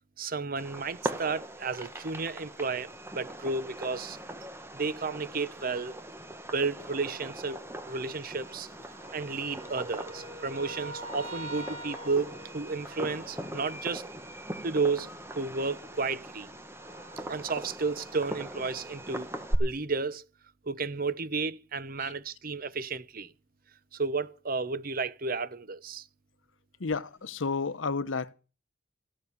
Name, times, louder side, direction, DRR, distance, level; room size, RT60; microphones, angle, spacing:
voice 1, 0.2-4.2 4.7-6.0 6.5-7.6 7.9-8.7 9.1-14.0 14.6-15.1 15.3-16.5 17.3-19.3 19.6-20.2 20.6-23.3 23.9-26.1, right 4 dB, 50° right, 1.0 m, -32 dB
Fireworks, 0.6-19.6, right 1 dB, 15° right, 1.5 m, -40 dB
sound 1, 1.5-4.2 4.7-19.6, right 1 dB, 80° right, 3.5 m, -49 dB
voice 2, 26.8-28.3, left 4 dB, 85° left, 0.9 m, -31 dB
14.5 x 7.2 x 9.8 m
head